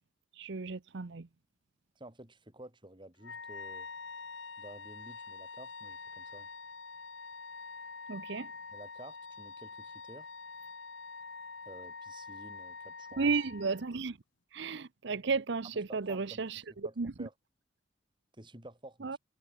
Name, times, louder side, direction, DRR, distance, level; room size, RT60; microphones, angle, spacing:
voice 1, 0.3-1.3 8.1-8.5 13.2-14.2 14.5-16.6 17.0-17.3 19.0-19.2, right 4 dB, 65° right, 0.7 m, -33 dB
voice 2, 1.9-3.9 4.6-6.5 8.7-10.3 11.6-13.3 15.9-17.3 18.4-19.2, right 1 dB, 25° right, 5.0 m, -52 dB
Wind instrument woodwind instrument, 3.2-14.0, left 4 dB, 75° left, 4.2 m, -46 dB
head